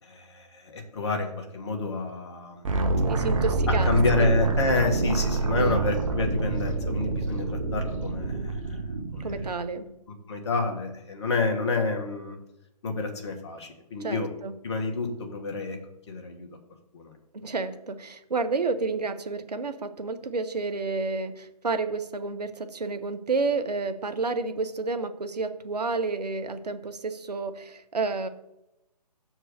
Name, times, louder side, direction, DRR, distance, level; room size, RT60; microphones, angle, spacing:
voice 1, 0.0-2.6 3.9-8.8 9.1-9.7 10.3-12.4 12.8-14.3 14.6-15.8 16.1-16.5 16.9-17.1, left 3 dB, 40° left, 4 dB, 1.4 m, -29 dB
sound 1, 2.6-9.5, right 3 dB, 50° right, 1.1 m, -26 dB
voice 2, 3.1-3.9 4.2-4.3 5.6-5.8 9.2-9.9 14.0-14.5 17.3-28.3, right 3 dB, 70° right, 10 dB, 0.9 m, -30 dB
6.3 x 4.6 x 6.4 m, 0.87 s
figure-of-eight pair, 140°, 21 cm